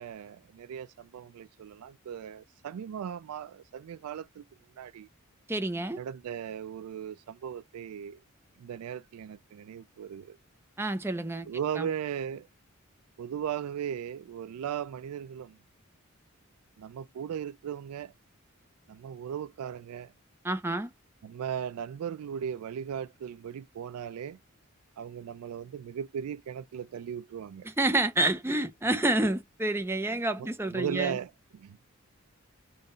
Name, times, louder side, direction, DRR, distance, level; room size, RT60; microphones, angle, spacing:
voice 1, 0.0-4.5 4.8-5.1 6.0-8.2 8.6-10.4 11.5-12.5 13.2-15.6 16.8-18.1 18.9-20.1 21.2-24.4 25.0-27.7 30.4-31.8, right 8 dB, 85° right, 0.3 m, -37 dB
voice 2, 5.5-6.0 10.8-11.5 11.8-11.9 20.4-20.9 27.6-31.1, right 2 dB, 10° right, 0.5 m, -28 dB
3.7 x 2.2 x 3.7 m
head